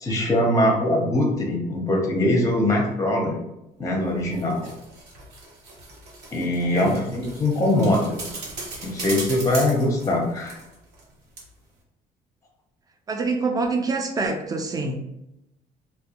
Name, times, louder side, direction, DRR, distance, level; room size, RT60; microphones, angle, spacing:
voice 1, 0.0-3.4 3.8-4.7 6.3-8.2 8.8-10.6, left 1 dB, 20° left, 0 dB, 0.6 m, -22 dB
sound 1, 4.1-11.1 11.4-11.5, right 2 dB, 75° right, 0.9 m, -38 dB
voice 2, 6.7-7.1 13.1-15.0, right 3 dB, 20° right, 3 dB, 0.4 m, -26 dB
2.3 x 2.1 x 2.8 m, 0.88 s
cardioid pair, 110°, 17 cm